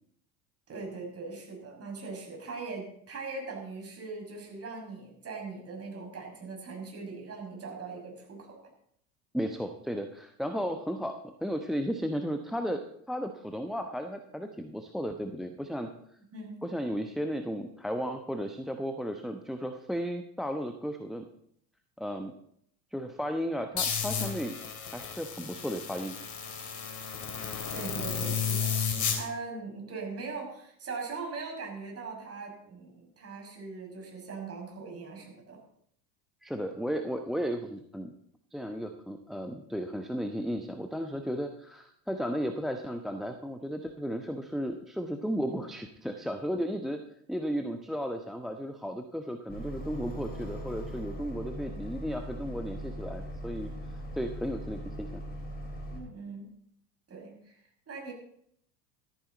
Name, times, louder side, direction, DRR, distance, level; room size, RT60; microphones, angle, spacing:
voice 1, 0.7-8.6 10.5-10.6 16.3-16.6 27.7-28.7 29.1-35.6 55.9-56.5 57.1-57.6 57.9-58.1, right 4 dB, 30° right, 0 dB, 6.3 m, -40 dB
voice 2, 9.3-15.9 16.6-21.2 22.0-22.3 22.9-24.6 24.9-26.2 36.4-38.1 38.5-47.0 47.3-53.7 54.1-55.2, equal, ahead, 7 dB, 0.9 m, -34 dB
sound 1, 23.8-29.2, left 6 dB, 35° left, 3.3 m, -33 dB
sound 2, 49.5-56.0, equal, 20° left, 4.2 m, -40 dB
14.0 x 13.5 x 4.0 m, 0.69 s
hypercardioid pair, 80°, 50 cm